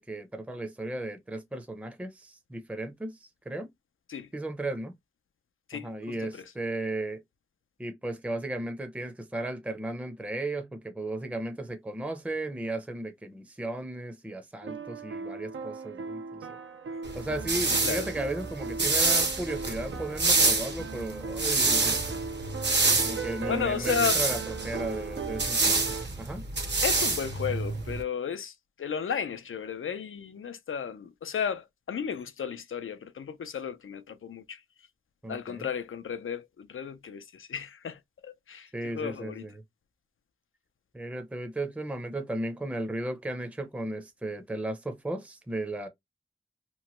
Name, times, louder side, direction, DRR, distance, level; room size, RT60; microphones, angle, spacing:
voice 1, 0.0-3.7 4.3-4.9 5.8-7.2 7.8-16.5 17.1-22.2 23.0-26.4 35.2-35.7 38.7-39.6 40.9-45.9, right 1 dB, 5° right, 0.5 m, -35 dB
voice 2, 5.7-6.5 17.7-18.1 23.0-23.2 23.5-24.2 26.8-34.6 35.3-39.4, left 7 dB, 85° left, 0.4 m, -34 dB
sound 1, 14.6-26.1, right 5 dB, 80° right, 0.4 m, -38 dB
sound 2, 17.1-28.0, right 3 dB, 60° right, 0.8 m, -27 dB
3.0 x 2.1 x 2.9 m
wide cardioid pair, 55°, 20 cm